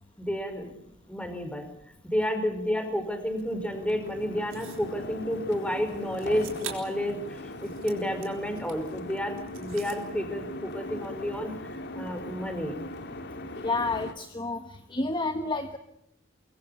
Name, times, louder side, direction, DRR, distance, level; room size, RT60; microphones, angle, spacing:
voice 1, 0.2-0.7 1.1-1.6 2.0-12.8, equal, 5° left, 7 dB, 5.0 m, -31 dB
sound 1, 3.2-14.1, left 2 dB, 60° left, 2.3 m, -40 dB
sound 2, 4.5-4.9 6.1-7.0 7.4-8.9 9.4-10.0, right 9 dB, 90° right, 4.4 m, -44 dB
voice 2, 13.6-14.6 14.9-15.8, left 3 dB, 25° left, 8 dB, 1.4 m, -29 dB
24.0 x 23.5 x 7.0 m, 0.75 s
head